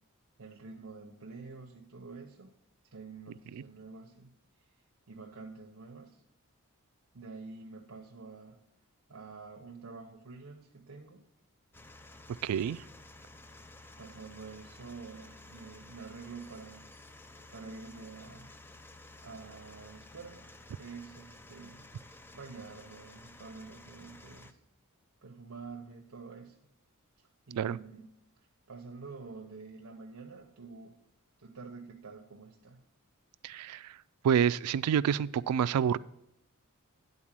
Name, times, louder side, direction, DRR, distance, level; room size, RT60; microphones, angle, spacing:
voice 1, 0.4-2.5 2.8-4.3 4.6-4.7 5.1-6.2 7.1-8.6 9.1-11.2 14.0-16.9 17.5-18.5 19.2-20.5 20.7-24.6 25.2-26.6 27.2-28.2 28.7-31.0 31.4-32.8, right 4 dB, 65° right, 0.8 m, -48 dB
sound 1, 11.7-24.5, left 2 dB, 10° left, 0.4 m, -53 dB
voice 2, 12.4-12.8 27.6-27.8 33.4-34.0 34.2-36.0, right 8 dB, 85° right, 0.3 m, -28 dB
10.0 x 4.0 x 7.4 m
head